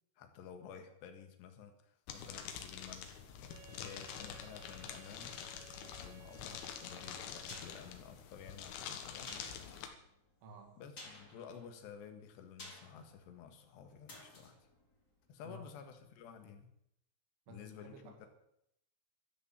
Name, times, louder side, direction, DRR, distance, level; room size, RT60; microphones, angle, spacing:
voice 1, 0.2-3.5 3.8-5.3 5.7-9.5 10.8-14.6 15.3-16.7 17.5-18.3, left 7 dB, 70° left, 6 dB, 3.7 m, -53 dB
sound 1, 2.1-9.9, left 8 dB, 85° left, 4.0 m, -47 dB
Wind instrument woodwind instrument, 3.5-7.9, right 7 dB, 60° right, 2.2 m, -59 dB
sound 2, 7.4-15.9 16.2-16.3, left 2 dB, 20° left, 3.8 m, -56 dB
voice 2, 10.4-10.8 15.4-15.7 17.5-18.3, right 1 dB, 80° right, 4 dB, 4.5 m, -53 dB
13.0 x 12.5 x 7.6 m, 0.76 s
omnidirectional pair, 5.4 m